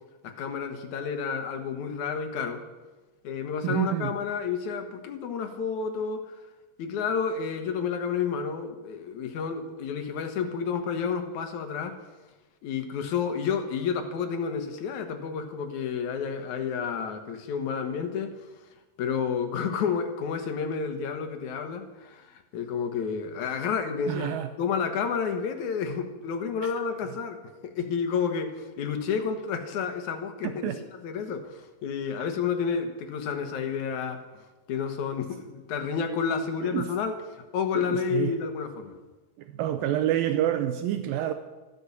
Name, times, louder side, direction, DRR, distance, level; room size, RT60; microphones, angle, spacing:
voice 1, 0.2-2.6 3.2-6.4 6.8-11.9 12.6-18.3 19.0-30.7 31.0-34.2 34.7-39.0, left 6 dB, 65° left, 6 dB, 2.4 m, -30 dB
voice 2, 3.6-4.1 24.1-24.5 30.6-30.8 36.6-36.9 37.8-38.3 39.5-41.3, right 12 dB, 80° right, 9 dB, 2.4 m, -27 dB
13.5 x 12.5 x 7.2 m, 1.2 s
omnidirectional pair, 4.3 m